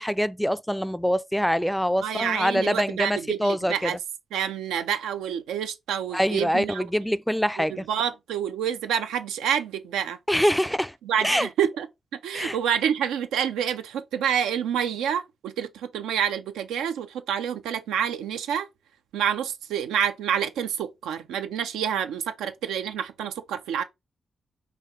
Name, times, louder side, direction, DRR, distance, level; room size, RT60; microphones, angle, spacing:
voice 1, 0.0-3.9 6.1-7.8 10.3-10.9 11.2-11.5 12.3-12.6, equal, 5° left, 0.3 m, -24 dB
voice 2, 2.0-4.0 4.3-6.9 7.7-10.2 11.0-11.9 12.2-18.7 19.1-23.8, right 8 dB, 90° right, 0.3 m, -28 dB
4.6 x 2.4 x 3.1 m
supercardioid pair, 45°, 0 cm